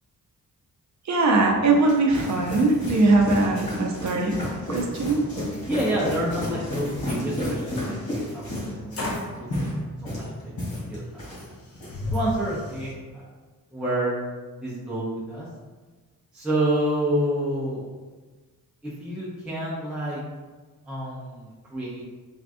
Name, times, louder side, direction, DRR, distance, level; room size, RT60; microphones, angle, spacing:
voice 1, 1.1-4.4 4.7-5.2, right 3 dB, 55° right, 1 dB, 0.5 m, -21 dB
sound 1, 1.5-11.5 11.8-12.2, left 1 dB, 90° left, 1.4 m, -32 dB
voice 2, 5.7-10.5 10.9-11.5 12.1-13.2 13.7-14.1 14.6-15.5 16.3-17.9 18.8-20.2 20.8-22.0, right 1 dB, 5° right, -9 dB, 0.6 m, -29 dB
sound 2, 9.0-9.4 10.6-10.7 11.1-12.9, left 2 dB, 45° left, 0.6 m, -33 dB
3.5 x 2.2 x 2.5 m, 1.3 s
wide cardioid pair, 110°, 35 cm